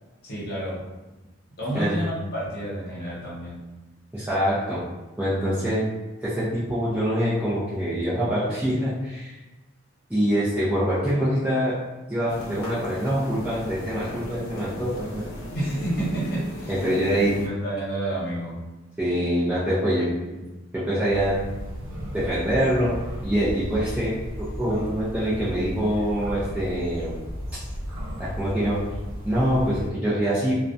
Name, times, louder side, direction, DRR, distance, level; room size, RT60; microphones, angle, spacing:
voice 1, 0.2-0.8 1.6-3.6 15.5-18.5, right 1 dB, 45° left, -7 dB, 0.9 m, -30 dB
voice 2, 1.7-2.1 4.1-4.8 5.2-5.9 6.2-9.4 10.1-11.8 12.1-15.2 16.7-17.4 19.0-20.5 20.7-21.5 22.1-22.9 23.2-27.2 27.5-27.6 28.2-28.8 29.2-30.5, equal, 10° right, -11 dB, 0.4 m, -25 dB
sound 1, 12.3-17.5, equal, 80° left, 0.6 m, -37 dB
sound 2, 21.1-29.9, equal, 70° right, 0.6 m, -34 dB
2.3 x 2.1 x 2.6 m, 1.1 s
head